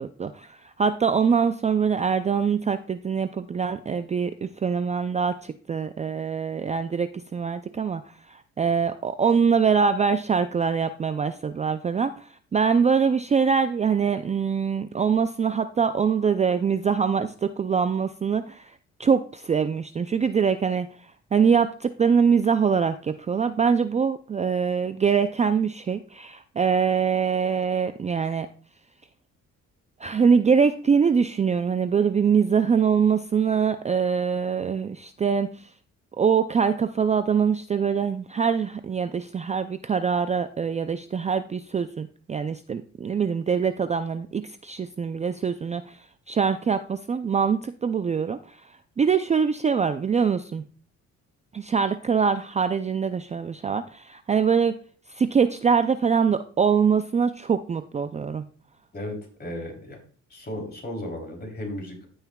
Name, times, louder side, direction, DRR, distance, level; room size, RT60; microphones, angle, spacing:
voice 1, 0.0-18.7 19.0-20.9 21.3-28.5 30.0-35.7 36.2-46.0 46.3-48.6 49.0-50.6 51.5-54.8 55.1-58.5, right 6 dB, 25° right, 10 dB, 0.4 m, -23 dB
voice 2, 58.9-60.0 60.3-62.1, left 1 dB, 35° left, 1 dB, 3.2 m, -35 dB
14.5 x 5.6 x 2.3 m, 0.42 s
cardioid pair, 90°, 30 cm